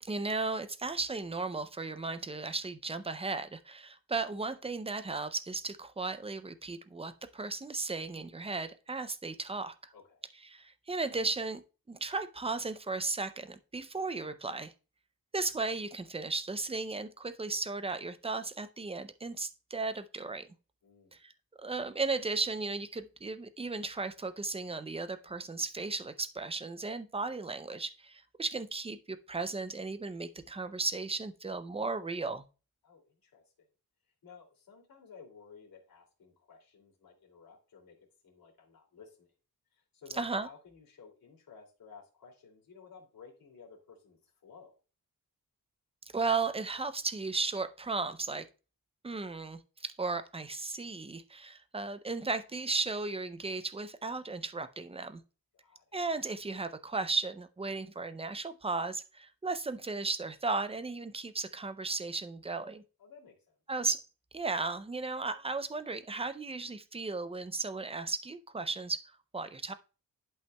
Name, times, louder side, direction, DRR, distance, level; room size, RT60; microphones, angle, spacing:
voice 1, 0.0-9.9 10.5-11.6 11.9-14.7 15.3-20.5 21.1-21.3 21.6-32.4 40.1-40.5 46.1-48.5 49.0-55.2 55.9-62.8 63.7-64.0 64.3-69.7, right 3 dB, 15° right, 0.5 m, -35 dB
voice 2, 9.9-10.3 20.8-21.2 32.8-33.5 34.2-38.0 38.2-39.3 39.7-44.7 55.5-56.0 63.0-63.6, left 5 dB, 70° left, 2.6 m, -55 dB
11.0 x 5.6 x 2.2 m
wide cardioid pair, 135°, 37 cm